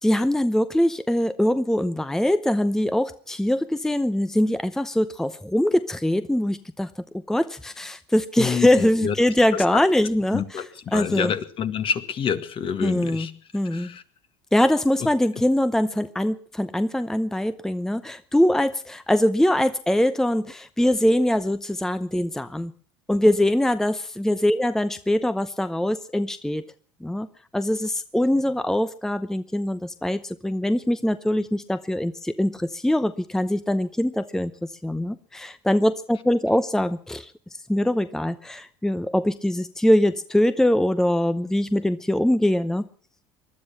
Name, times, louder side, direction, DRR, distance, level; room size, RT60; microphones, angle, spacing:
voice 1, 0.0-10.6 10.9-11.3 12.8-13.3 13.5-13.9 14.5-22.7 23.1-26.6 27.0-27.3 27.5-37.3 37.7-42.9, left 1 dB, 5° left, 12 dB, 0.8 m, -23 dB
voice 2, 8.4-9.1 9.5-9.6 10.3-13.3 13.6-14.0, left 7 dB, 45° left, 10 dB, 1.8 m, -28 dB
20.5 x 12.0 x 5.8 m, 0.44 s
hypercardioid pair, 85°, 13 cm